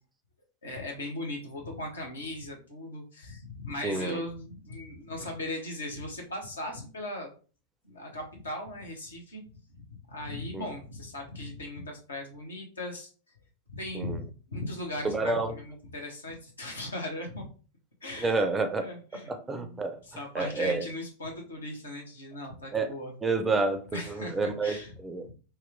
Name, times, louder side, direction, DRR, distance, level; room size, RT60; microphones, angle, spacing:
voice 1, 0.6-7.3 7.8-9.4 9.7-13.1 13.7-17.5 18.0-18.5 18.8-23.1 23.9-24.9 25.2-25.3, left 1 dB, 70° left, 1.0 m, -38 dB
voice 2, 3.8-4.2 10.5-10.7 13.9-14.2 15.0-15.5 18.2-18.8 19.1-20.0 20.3-20.8 22.7-22.9 23.2-24.8 25.0-25.2, right 3 dB, 15° right, 0.4 m, -29 dB
3.0 x 2.3 x 3.4 m
figure-of-eight pair, 90°, 0 cm